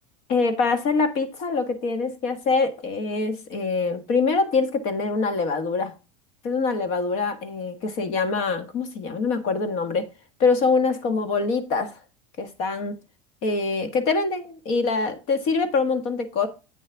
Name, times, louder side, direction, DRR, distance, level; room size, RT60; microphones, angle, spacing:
voice 1, 0.3-5.9 6.4-10.1 10.4-12.0 12.4-12.9 13.4-16.5, left 4 dB, 45° left, 1.6 m, -24 dB
8.4 x 6.5 x 3.4 m
cardioid pair, 170°, 15 cm